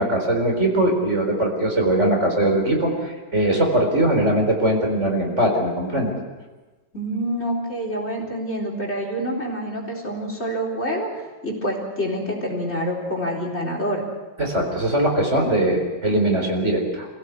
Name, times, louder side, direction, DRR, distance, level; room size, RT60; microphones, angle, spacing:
voice 1, 0.0-6.1 14.4-17.1, right 1 dB, 40° right, 2 dB, 4.6 m, -21 dB
voice 2, 6.9-14.1, equal, 35° left, 0 dB, 4.4 m, -27 dB
26.5 x 17.0 x 8.2 m, 1.2 s
omnidirectional pair, 1.9 m